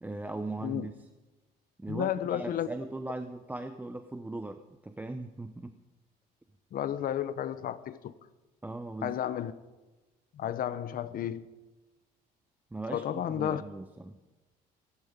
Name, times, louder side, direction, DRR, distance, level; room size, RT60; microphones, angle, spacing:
voice 1, 0.0-0.9 1.8-5.8 8.6-9.2 12.7-14.2, right 2 dB, 10° right, 0.8 m, -39 dB
voice 2, 1.9-2.7 6.7-8.1 9.0-9.5 10.3-11.5 12.9-13.6, left 10 dB, 60° left, 1.1 m, -32 dB
23.5 x 11.5 x 5.3 m
cardioid pair, 110°, 17 cm